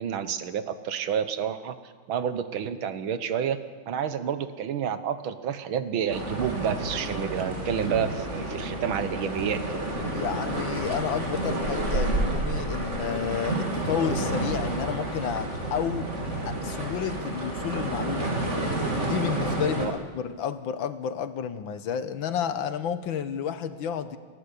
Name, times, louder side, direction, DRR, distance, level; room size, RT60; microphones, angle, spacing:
voice 1, 0.0-1.8 2.1-9.8 19.8-19.9, right 8 dB, 75° right, 11 dB, 1.9 m, -29 dB
sound 1, 6.1-19.9, right 2 dB, 35° right, 3.4 m, -30 dB
voice 2, 10.1-16.1 16.4-18.3 19.0-24.2, left 8 dB, 70° left, 11 dB, 1.7 m, -31 dB
29.0 x 13.5 x 8.4 m, 1.5 s
omnidirectional pair, 2.2 m